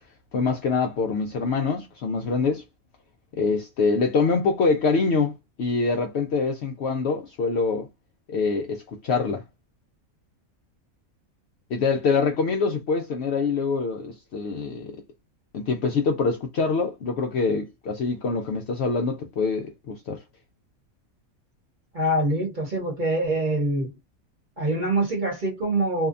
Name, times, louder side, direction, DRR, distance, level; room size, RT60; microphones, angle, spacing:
voice 1, 0.3-2.6 3.4-7.9 8.3-9.4 11.7-15.0 15.5-20.2, left 4 dB, 65° left, 0.7 m, -25 dB
voice 2, 21.9-23.9 24.6-26.1, right 1 dB, 40° right, 1.0 m, -24 dB
2.7 x 2.1 x 2.4 m
omnidirectional pair, 1.5 m